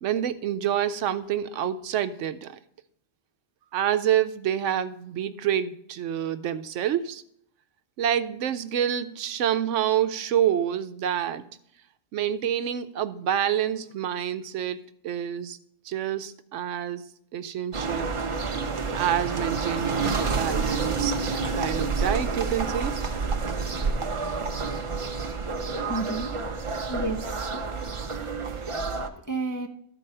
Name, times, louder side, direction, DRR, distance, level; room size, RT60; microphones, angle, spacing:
voice 1, 0.0-2.6 3.7-7.2 8.0-11.4 12.1-14.8 15.0-15.6 15.9-17.0 17.3-18.1 18.9-23.0, right 10 dB, 80° right, 12 dB, 0.9 m, -27 dB
sound 1, 17.7-29.1, right 4 dB, 35° right, 0.5 m, -29 dB
voice 2, 25.9-26.4 26.6-29.7, right 2 dB, 30° left, 2 dB, 0.4 m, -34 dB
13.0 x 4.6 x 5.5 m, 0.71 s
omnidirectional pair, 1.3 m